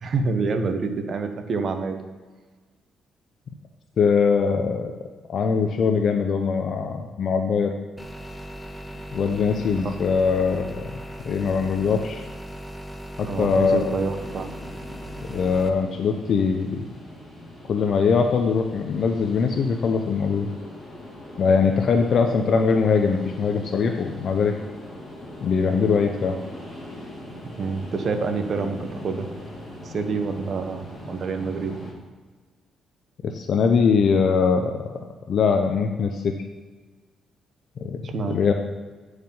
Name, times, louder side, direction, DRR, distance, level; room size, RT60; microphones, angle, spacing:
voice 1, 0.0-2.0 8.9-9.0 9.8-9.9 13.3-14.5 27.6-29.3 29.8-31.8 38.0-38.4, right 4 dB, 50° right, 7 dB, 1.0 m, -27 dB
voice 2, 4.0-4.9 5.3-7.7 9.1-10.8 11.2-12.3 13.2-13.9 15.2-16.9 17.7-20.5 21.4-24.5 25.4-26.4 33.2-35.0 35.3-36.4 37.8-38.0 38.3-38.5, left 5 dB, 55° left, 5 dB, 0.6 m, -22 dB
sound 1, 8.0-15.7, equal, 5° right, 0.8 m, -38 dB
sound 2, 14.1-31.9, left 1 dB, 15° left, 2.8 m, -41 dB
9.2 x 4.8 x 5.4 m, 1.4 s
cardioid pair, 90°, 0 cm